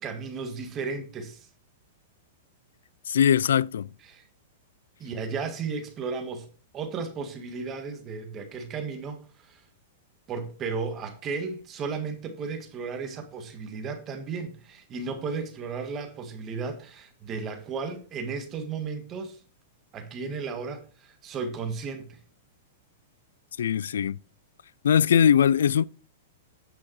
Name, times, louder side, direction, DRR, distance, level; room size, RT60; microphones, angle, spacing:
voice 1, 0.0-1.5 4.1-4.2 5.0-6.5 6.7-9.6 10.3-19.4 19.9-22.2, right 5 dB, 25° right, 1.8 m, -34 dB
voice 2, 3.1-3.9 23.6-24.2 24.8-25.9, left 8 dB, 85° left, 0.3 m, -21 dB
8.9 x 6.0 x 4.7 m
hypercardioid pair, 145°, 0 cm